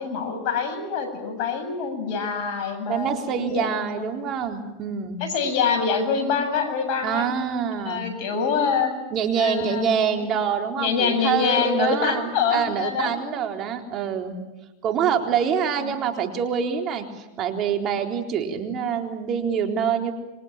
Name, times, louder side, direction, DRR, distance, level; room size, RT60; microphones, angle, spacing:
voice 1, 0.0-3.7 4.0-4.1 5.2-7.3 7.8-8.9 9.4-10.3 10.8-13.3 15.8-15.9, left 6 dB, 55° left, 6 dB, 7.8 m, -25 dB
voice 2, 2.9-5.2 7.0-8.1 9.1-14.4 14.8-20.1, right 7 dB, 40° right, 4 dB, 3.9 m, -25 dB
26.5 x 24.0 x 9.0 m, 1.0 s
hypercardioid pair, 105°, 0 cm